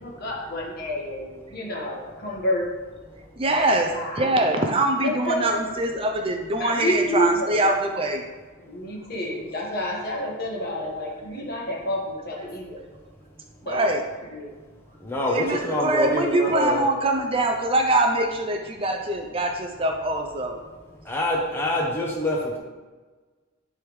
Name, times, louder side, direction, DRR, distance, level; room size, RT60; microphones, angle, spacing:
voice 1, 0.0-2.7 3.5-4.2 5.0-5.6 6.6-7.6 8.6-12.8 13.6-13.9 14.3-14.5, equal, 50° left, -2 dB, 1.4 m, -29 dB
voice 2, 3.4-3.9 4.2-8.2 13.6-14.0 15.3-20.6, right 2 dB, 25° right, 4 dB, 0.4 m, -23 dB
voice 3, 15.0-16.8 21.1-22.6, left 1 dB, 10° left, -3 dB, 0.7 m, -25 dB
10.0 x 3.4 x 3.2 m, 1.3 s
head